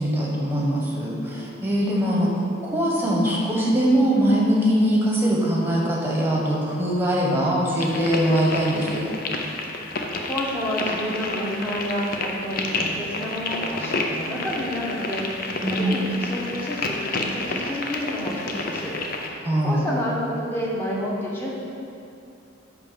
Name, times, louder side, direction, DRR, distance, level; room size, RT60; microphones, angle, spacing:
voice 1, 0.0-2.3 2.6-9.1 15.6-16.0 19.4-19.8, equal, 10° right, -3 dB, 1.2 m, -22 dB
sound 1, 7.8-19.3, left 3 dB, 45° left, 0.7 m, -30 dB
voice 2, 9.8-21.5, equal, 10° left, -5 dB, 1.2 m, -30 dB
10.0 x 3.4 x 6.8 m, 2.6 s
head